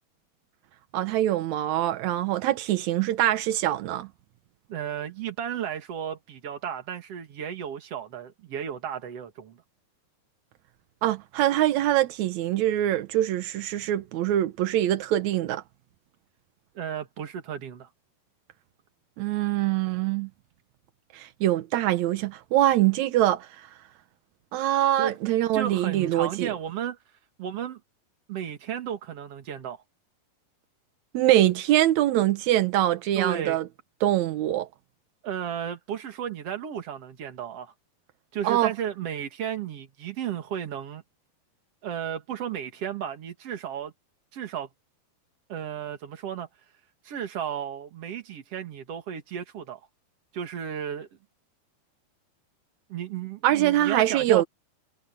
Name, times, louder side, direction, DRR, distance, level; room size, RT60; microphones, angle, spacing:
voice 1, 0.9-4.1 11.0-15.6 19.2-20.3 21.1-23.5 24.5-26.5 31.1-33.6 34.0-34.7 38.4-38.7 53.4-54.4, right 13 dB, 80° right, 1.6 m, -24 dB
voice 2, 4.7-9.6 16.8-17.9 25.0-25.2 25.5-27.0 27.4-27.8 28.3-29.8 33.1-33.6 35.2-37.7 38.3-41.0 41.8-43.9 44.3-44.7 45.5-46.5 47.0-49.8 50.3-51.1 52.9-54.4, right 9 dB, 45° right, 2.4 m, -33 dB
omnidirectional pair, 4.5 m